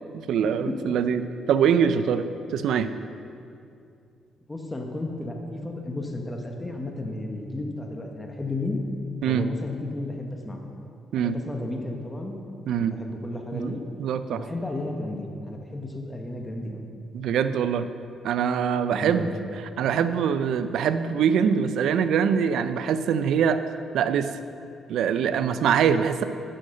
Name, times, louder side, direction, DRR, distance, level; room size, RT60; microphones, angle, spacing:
voice 1, 0.1-2.3 2.5-2.9 9.2-9.5 11.1-11.4 12.7-13.0 13.5-13.7 14.0-14.4 17.1-17.9 18.2-23.6 23.9-24.3 24.9-26.2, right 7 dB, 75° right, 11 dB, 0.5 m, -23 dB
voice 2, 4.5-8.8 9.2-10.7 11.2-12.3 12.8-13.8 14.3-16.8 18.9-19.4, left 2 dB, 15° left, 2 dB, 1.2 m, -33 dB
10.0 x 6.5 x 6.4 m, 2.5 s
cardioid pair, 90°, 0 cm